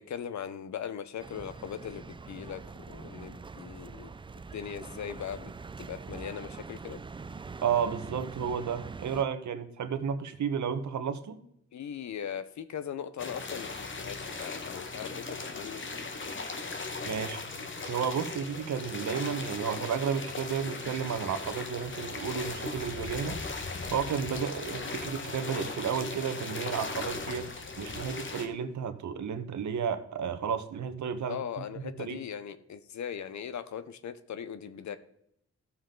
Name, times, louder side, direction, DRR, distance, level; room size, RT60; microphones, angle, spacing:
voice 1, 0.0-2.6 2.9-4.1 4.5-5.5 5.8-7.0 11.7-15.8 31.3-35.0, left 8 dB, 75° left, 0.8 m, -39 dB
sound 1, 1.2-9.2, right 4 dB, 20° right, 0.4 m, -44 dB
voice 2, 7.6-11.4 17.0-17.4 17.9-23.5 23.9-27.5 27.8-31.6 32.0-32.2, right 7 dB, 75° right, 1.2 m, -32 dB
sound 2, 13.2-28.5, left 3 dB, 40° left, 1.4 m, -38 dB
14.0 x 7.2 x 3.8 m
cardioid pair, 105°, 29 cm